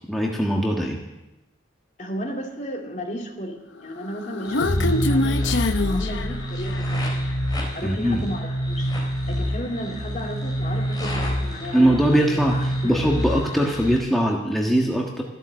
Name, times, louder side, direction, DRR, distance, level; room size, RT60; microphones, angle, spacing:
voice 1, 0.1-1.0 7.8-8.3 11.7-15.2, equal, ahead, -2 dB, 1.4 m, -21 dB
voice 2, 2.0-7.3 7.7-8.9 9.3-12.9, equal, 40° left, 1 dB, 2.6 m, -34 dB
Human voice, 4.0-7.0, left 2 dB, 75° left, 0.9 m, -24 dB
sound 1, 4.4-14.0, equal, 20° left, 4.0 m, -27 dB
14.5 x 12.5 x 7.6 m, 0.98 s
head